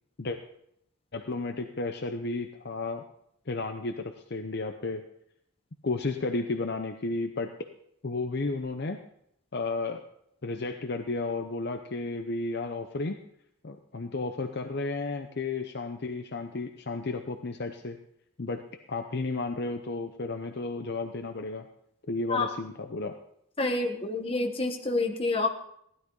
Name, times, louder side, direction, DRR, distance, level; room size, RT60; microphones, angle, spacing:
voice 1, 1.1-3.0 3.5-5.0 5.8-7.5 8.0-9.0 9.5-10.0 10.4-13.2 13.6-18.0 18.4-18.6 18.9-21.7 22.1-23.2, left 3 dB, 50° left, 6 dB, 0.7 m, -33 dB
voice 2, 23.6-25.5, left 2 dB, 25° left, 3 dB, 1.2 m, -28 dB
16.0 x 12.0 x 3.9 m, 0.73 s
head